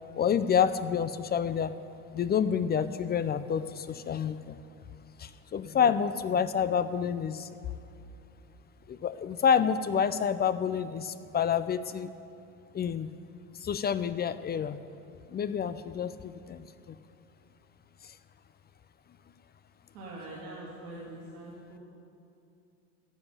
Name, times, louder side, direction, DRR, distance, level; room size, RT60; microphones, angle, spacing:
voice 1, 0.2-1.7 2.1-4.6 5.2-7.5 8.9-12.1 12.7-13.1 13.6-14.8 15.3-16.9 18.0-18.1, left 7 dB, 25° left, 13 dB, 0.4 m, -28 dB
voice 2, 19.9-21.8, right 1 dB, 75° right, -6 dB, 2.8 m, -43 dB
15.5 x 5.3 x 9.6 m, 2.6 s
hypercardioid pair, 80°, 40 cm